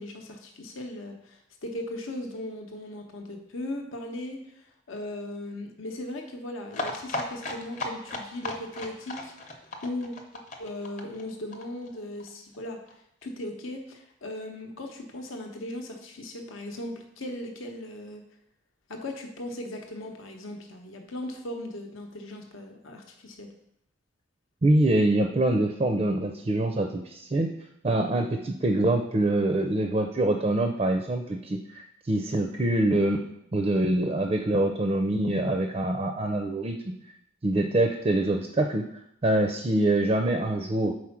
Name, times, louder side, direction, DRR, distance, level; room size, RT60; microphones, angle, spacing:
voice 1, 0.0-10.1 10.6-12.8 13.2-18.2 18.9-23.5, left 1 dB, 75° left, 3 dB, 0.8 m, -38 dB
sound 1, 6.7-12.3 12.5-12.6 12.9-13.0 13.2-13.3, left 2 dB, 35° left, 0.8 m, -35 dB
voice 2, 24.6-27.5 27.8-33.2 33.5-36.9 37.4-38.8 39.2-40.9, right 1 dB, 30° right, 4 dB, 0.4 m, -25 dB
4.9 x 4.3 x 5.8 m, 0.75 s
head